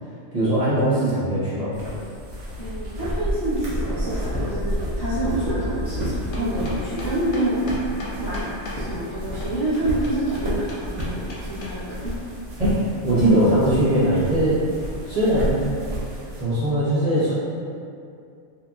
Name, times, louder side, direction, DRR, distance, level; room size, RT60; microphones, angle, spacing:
voice 1, 0.3-1.7 12.6-12.7 13.0-14.6 15.1-15.6 16.4-17.3, right 1 dB, 35° right, -13 dB, 0.8 m, -20 dB
sound 1, 1.7-16.4, equal, 80° right, 1.0 m, -30 dB
voice 2, 2.6-7.9 8.2-8.5 8.7-12.1, right 1 dB, 25° left, -14 dB, 0.6 m, -27 dB
sound 2, 6.0-8.8 9.4-11.7, left 2 dB, 80° left, 0.9 m, -37 dB
2.8 x 2.5 x 2.2 m, 2.4 s
omnidirectional pair, 1.2 m